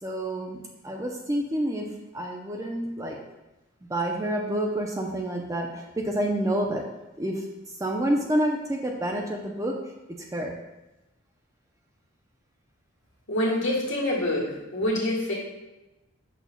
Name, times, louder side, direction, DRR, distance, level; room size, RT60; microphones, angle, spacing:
voice 1, 0.0-1.9 2.1-3.2 3.9-6.9 7.2-7.5 7.8-9.7 10.2-10.5, right 1 dB, 15° right, 1 dB, 0.5 m, -28 dB
voice 2, 13.3-14.5 14.7-15.3, left 1 dB, 70° left, -4 dB, 1.7 m, -25 dB
6.7 x 6.2 x 2.2 m, 1.0 s
head